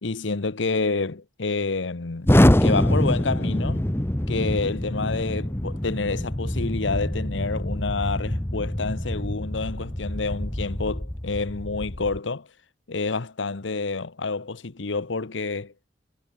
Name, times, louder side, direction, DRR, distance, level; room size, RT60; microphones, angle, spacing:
voice 1, 0.0-2.3 2.6-3.9 4.3-12.5 12.9-15.7, left 3 dB, 85° left, 1.0 m, -28 dB
Explosion, 2.2-12.2, left 1 dB, 15° left, 0.8 m, -24 dB
head